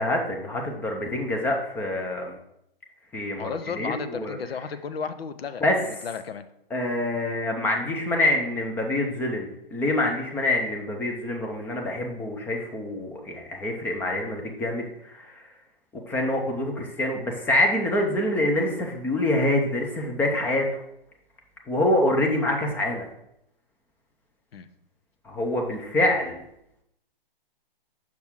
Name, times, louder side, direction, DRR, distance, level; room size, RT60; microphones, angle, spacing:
voice 1, 0.0-2.4 3.1-4.4 5.6-5.8 6.7-15.4 15.9-20.8 21.7-23.1 25.2-26.4, left 1 dB, 5° left, 2 dB, 0.5 m, -26 dB
voice 2, 3.4-6.4 24.5-24.7, left 6 dB, 80° left, 11 dB, 0.7 m, -34 dB
6.0 x 6.0 x 3.6 m, 0.79 s
hypercardioid pair, 140°, 30 cm